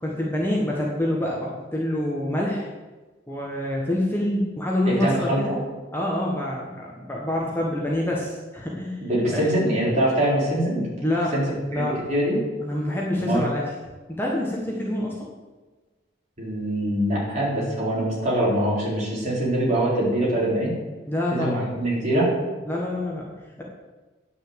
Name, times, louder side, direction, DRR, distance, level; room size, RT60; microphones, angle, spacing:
voice 1, 0.0-2.7 3.3-5.5 5.9-9.1 9.3-9.5 11.0-11.4 11.7-12.0 12.6-13.6 14.1-15.2 21.1-21.6 22.7-23.3, left 1 dB, 10° left, -3 dB, 1.4 m, -26 dB
voice 2, 4.9-5.6 9.0-10.9 11.3-11.5 11.7-11.8 12.1-12.4 13.2-13.5 16.4-20.7 21.3-22.3, right 1 dB, 35° right, -6 dB, 4.4 m, -23 dB
9.6 x 6.4 x 7.9 m, 1.2 s
head